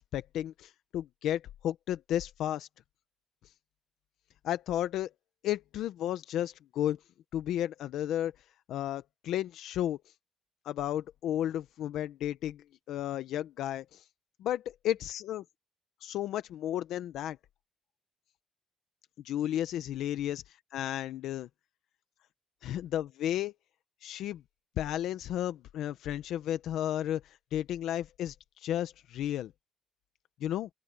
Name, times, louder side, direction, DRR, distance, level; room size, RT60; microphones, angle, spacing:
voice 1, 0.0-2.7 4.4-5.1 5.4-7.0 7.3-8.3 8.7-10.0 10.6-14.0 14.4-15.4 16.0-17.4 19.2-21.5 22.6-23.5 24.0-24.4 24.8-29.5 30.4-30.7, left 11 dB, 90° left, 0.7 m, -33 dB
open air
cardioid pair, 170°, 0 cm